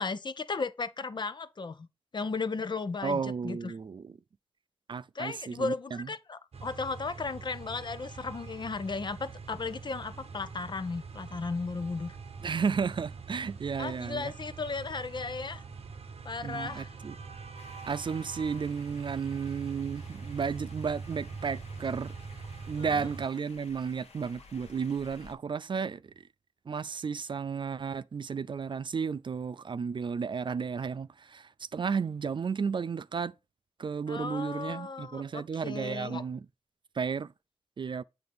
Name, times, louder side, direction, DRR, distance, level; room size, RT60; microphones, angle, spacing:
voice 1, 0.0-1.9 2.1-3.7 5.1-12.2 13.8-15.6 16.2-16.9 22.8-23.1 34.1-36.2, left 4 dB, 45° left, 0.6 m, -35 dB
voice 2, 3.0-4.1 4.9-6.1 12.4-14.3 16.4-17.2 17.8-22.1 22.7-26.2 26.7-33.3 33.8-36.5 36.9-37.3 37.8-38.0, right 6 dB, 45° right, 0.4 m, -33 dB
sound 1, 6.5-23.3, right 5 dB, 70° right, 0.9 m, -44 dB
sound 2, 17.5-25.3, left 4 dB, 80° left, 1.1 m, -55 dB
7.8 x 2.9 x 5.1 m
cardioid pair, 60°, 11 cm